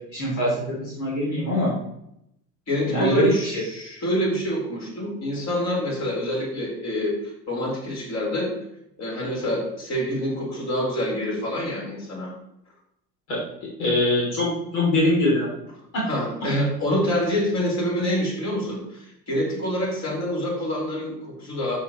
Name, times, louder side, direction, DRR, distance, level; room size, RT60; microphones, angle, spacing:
voice 1, 0.1-1.7 2.9-3.6 13.3-15.5 15.9-16.0, left 1 dB, 60° left, -5 dB, 3.2 m, -23 dB
voice 2, 2.7-7.1 7.5-8.5 9.0-12.3 16.1-21.8, equal, 35° left, -2 dB, 4.2 m, -26 dB
13.0 x 7.3 x 3.1 m, 0.79 s
figure-of-eight pair, 70°, 48 cm